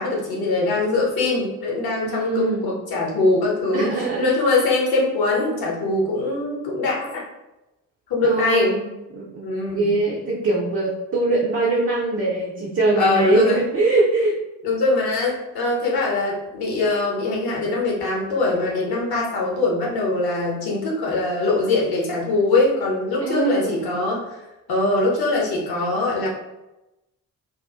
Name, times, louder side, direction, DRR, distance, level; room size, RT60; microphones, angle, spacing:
voice 1, 0.0-3.9 4.2-7.2 8.1-8.7 9.4-10.0 13.0-13.6 14.6-24.2 24.7-26.3, left 2 dB, 50° left, -3 dB, 1.0 m, -22 dB
voice 2, 2.1-2.7 3.7-4.3 8.2-8.9 9.1-9.4 9.7-14.4 23.2-23.8, right 2 dB, 25° right, -5 dB, 0.6 m, -22 dB
2.8 x 2.4 x 2.3 m, 0.97 s
figure-of-eight pair, 40°, 50 cm